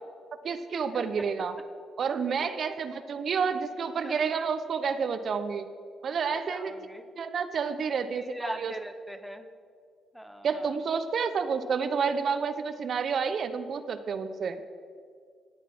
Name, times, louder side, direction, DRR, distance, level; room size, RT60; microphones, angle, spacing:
voice 1, 0.4-1.5 2.0-5.6 6.0-6.7 7.2-8.7 10.4-14.6, right 6 dB, 55° right, 10 dB, 0.8 m, -29 dB
voice 2, 2.4-2.8 4.0-4.1 6.5-7.0 8.1-9.5 10.1-10.7, equal, ahead, 9 dB, 1.0 m, -40 dB
15.5 x 9.0 x 6.0 m, 2.1 s
cardioid pair, 90°, 0 cm